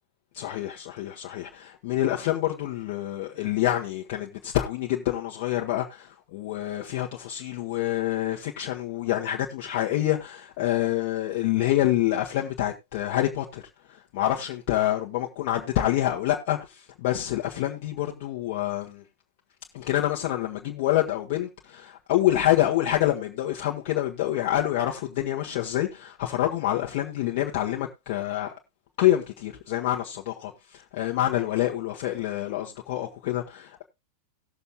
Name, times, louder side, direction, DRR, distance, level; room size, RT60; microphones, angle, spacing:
voice 1, 0.3-13.6 14.1-19.0 19.7-28.5 29.0-33.8, left 13 dB, 50° left, 1.4 m, -27 dB
19.0 x 6.9 x 2.4 m
figure-of-eight pair, 90°, 0 cm